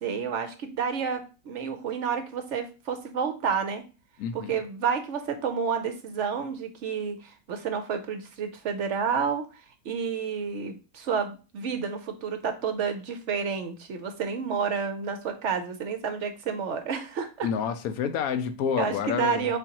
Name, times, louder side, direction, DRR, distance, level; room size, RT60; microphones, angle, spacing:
voice 1, 0.0-3.8 4.3-9.5 9.8-17.5 18.8-19.6, right 6 dB, 65° right, 0.8 m, -30 dB
voice 2, 4.2-4.6 17.4-19.5, left 7 dB, 80° left, 1.1 m, -28 dB
4.9 x 3.8 x 2.8 m
omnidirectional pair, 1.5 m